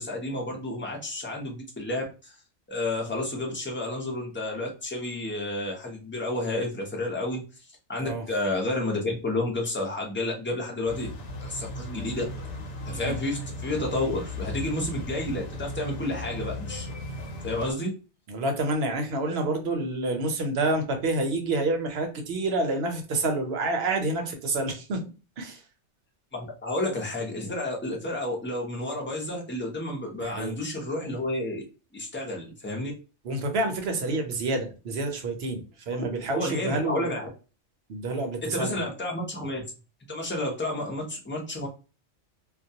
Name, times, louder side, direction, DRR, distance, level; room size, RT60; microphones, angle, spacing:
voice 1, 0.0-2.3 2.7-7.4 7.9-11.1 11.4-12.3 12.9-16.9 17.4-17.9 26.3-31.6 31.9-32.9 36.3-37.3 38.4-39.6 40.1-41.7, left 2 dB, 15° left, -1 dB, 0.5 m, -31 dB
sound 1, 10.8-17.7, left 1 dB, 85° left, 1.0 m, -36 dB
voice 2, 18.3-25.0 25.4-25.6 30.2-30.5 33.2-37.1 37.9-38.7, right 2 dB, 65° right, 4 dB, 0.8 m, -28 dB
2.3 x 2.2 x 2.7 m, 0.33 s
omnidirectional pair, 1.2 m